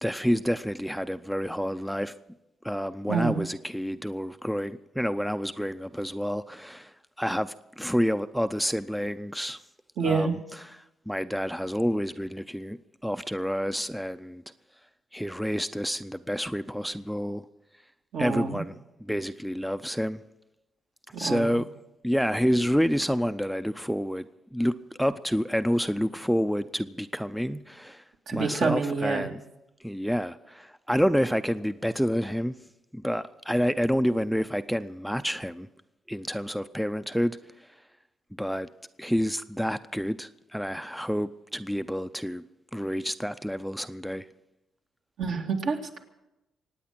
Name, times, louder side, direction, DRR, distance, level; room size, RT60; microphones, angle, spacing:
voice 1, 0.0-2.1 2.6-9.6 10.0-10.7 11.1-14.4 15.1-17.5 18.2-20.2 21.2-21.7 22.0-24.3 24.5-28.0 28.3-29.4 29.8-32.6 32.9-35.7 36.1-37.7 38.4-38.7 39.0-42.4 42.7-44.3, equal, ahead, 0.5 m, -29 dB
voice 2, 3.1-3.4 10.0-10.3 18.1-18.6 21.1-21.5 28.3-29.3 45.2-46.0, right 4 dB, 70° right, 2.2 m, -27 dB
24.0 x 9.2 x 5.9 m
cardioid pair, 90°, 0 cm